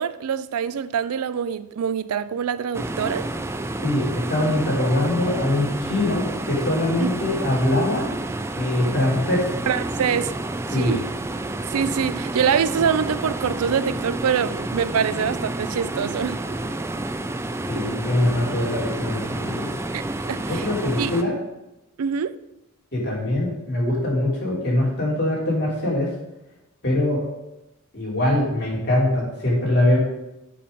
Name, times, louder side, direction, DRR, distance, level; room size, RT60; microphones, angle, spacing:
voice 1, 0.0-3.3 7.0-7.1 9.7-10.3 10.7-11.0 11.7-16.4 19.9-20.0 20.3-20.7 21.0-21.1 22.0-22.3, right 7 dB, 85° right, 0.4 m, -24 dB
sound 1, 2.7-21.2, right 2 dB, 10° right, 0.3 m, -29 dB
voice 2, 3.8-8.1 8.6-9.5 10.7-11.0 17.7-19.7 20.5-21.4 22.9-26.1 26.8-27.2 27.9-30.0, left 1 dB, 50° left, 3.1 m, -23 dB
7.7 x 5.5 x 5.2 m
head